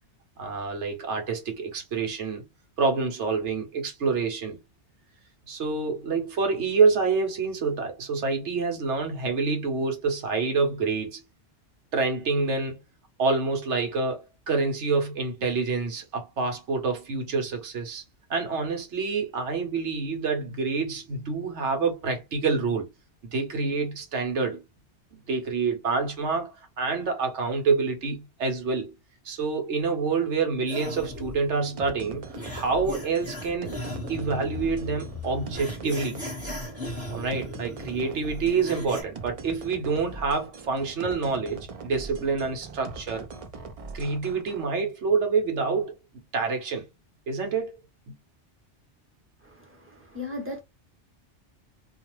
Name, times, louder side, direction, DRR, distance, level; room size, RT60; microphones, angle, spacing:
voice 1, 0.4-2.4 2.8-4.6 5.5-11.2 11.9-12.8 13.2-18.0 18.3-22.9 23.3-24.6 25.3-28.9 29.2-32.2 32.5-33.7 34.1-36.2 37.1-43.3 43.9-45.9 46.3-46.9 47.3-47.7 48.1-48.2, right 4 dB, 80° right, 1.2 m, -27 dB
sound 1, 30.7-39.0, left 1 dB, 15° left, 0.9 m, -38 dB
sound 2, 31.8-44.6, right 4 dB, 50° right, 0.4 m, -41 dB
voice 2, 49.4-50.6, left 2 dB, 15° right, 0.8 m, -37 dB
2.5 x 2.3 x 3.0 m
omnidirectional pair, 1.2 m